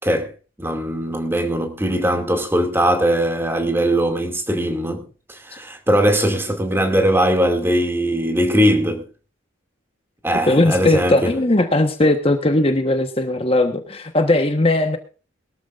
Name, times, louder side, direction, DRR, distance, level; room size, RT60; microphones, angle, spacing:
voice 1, 0.6-9.0 10.2-11.3, equal, 10° right, 2.4 m, -20 dB
voice 2, 10.5-15.0, left 2 dB, 30° left, 1.2 m, -18 dB
22.0 x 13.5 x 2.5 m
head